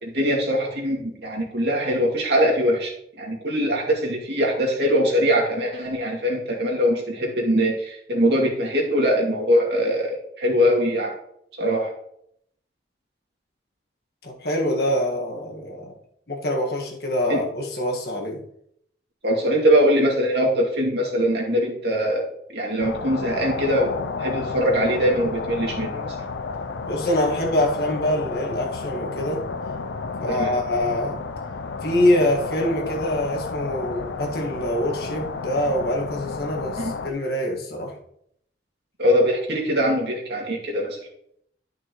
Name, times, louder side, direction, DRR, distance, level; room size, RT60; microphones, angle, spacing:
voice 1, 0.0-2.9 3.2-11.1 11.6-11.9 17.3-17.4 19.2-22.2 22.5-23.9 24.2-26.1 30.3-30.5 36.8-36.9 39.0-41.0, equal, 65° right, -1 dB, 2.3 m, -22 dB
voice 2, 14.2-15.9 16.3-18.4 26.9-29.5 30.2-31.2 31.8-37.9, left 1 dB, 55° left, 0 dB, 1.7 m, -25 dB
sound 1, 22.8-37.1, left 4 dB, 75° left, 0.5 m, -31 dB
11.5 x 6.1 x 3.1 m, 0.71 s
head